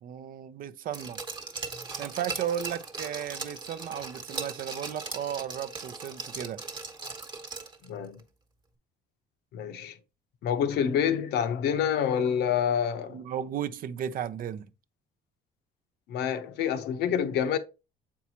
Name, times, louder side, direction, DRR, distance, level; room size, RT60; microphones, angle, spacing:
voice 1, 0.0-1.2 2.0-6.6 13.1-14.7, right 9 dB, 55° right, 0.6 m, -35 dB
Glass, 0.9-7.9 8.2-8.3, right 4 dB, 25° right, 1.1 m, -38 dB
voice 2, 7.8-8.2 9.5-10.0 10.4-13.2 16.1-17.6, left 8 dB, 80° left, 0.8 m, -27 dB
7.3 x 4.6 x 2.8 m
cardioid pair, 110°, 17 cm